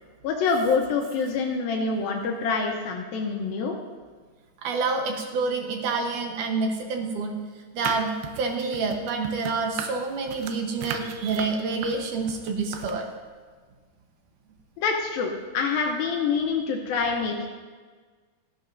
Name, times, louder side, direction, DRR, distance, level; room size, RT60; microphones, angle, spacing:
voice 1, 0.2-3.8 14.8-17.5, left 5 dB, 75° left, 1 dB, 2.6 m, -26 dB
voice 2, 4.6-7.4 7.7-13.1, right 4 dB, 65° right, 3 dB, 2.3 m, -28 dB
sound 1, 7.8-12.9, right 7 dB, 85° right, 2.8 m, -36 dB
17.0 x 12.5 x 2.6 m, 1.5 s
omnidirectional pair, 4.3 m